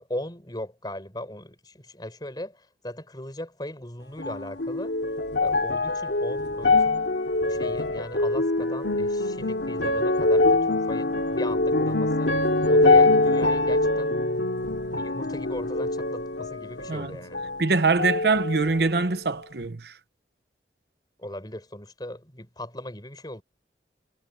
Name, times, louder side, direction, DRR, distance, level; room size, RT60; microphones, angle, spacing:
voice 1, 0.0-5.0 5.4-7.1 7.5-12.4 12.7-14.1 14.9-17.5 21.2-23.4, left 1 dB, 25° left, 4.5 m, -38 dB
sound 1, 4.2-17.7 18.0-18.9 19.6-19.7, left 2 dB, 85° left, 2.6 m, -24 dB
voice 2, 17.6-19.9, right 4 dB, 65° right, 0.8 m, -23 dB
head